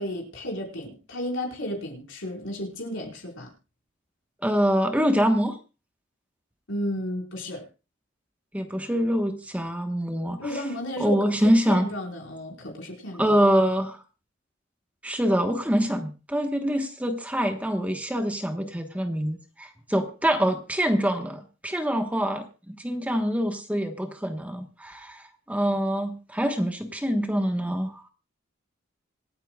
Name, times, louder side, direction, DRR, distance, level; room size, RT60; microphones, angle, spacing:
voice 1, 0.0-3.5 6.7-7.6 10.4-13.3, left 1 dB, 80° left, 1 dB, 4.7 m, -33 dB
voice 2, 4.4-5.5 8.5-10.4 11.0-11.9 13.2-14.0 15.0-28.1, equal, 5° right, 5 dB, 1.2 m, -25 dB
26.5 x 8.8 x 2.4 m, 0.32 s
head